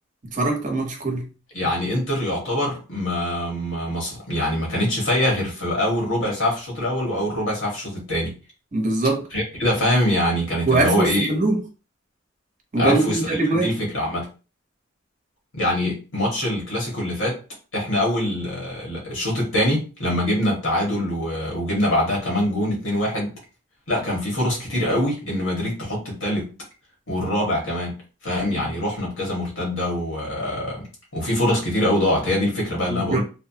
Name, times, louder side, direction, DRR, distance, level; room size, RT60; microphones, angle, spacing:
voice 1, 0.3-1.3 8.7-9.3 10.7-11.6 12.7-13.7 28.5-28.7 32.9-33.2, right 2 dB, 40° right, 0.8 m, -22 dB
voice 2, 1.5-8.3 9.3-11.3 12.8-14.3 15.5-17.4 17.7-23.3 23.9-26.5 27.1-30.9 31.1-33.2, left 1 dB, 90° left, 1.6 m, -24 dB
3.4 x 2.0 x 2.8 m
head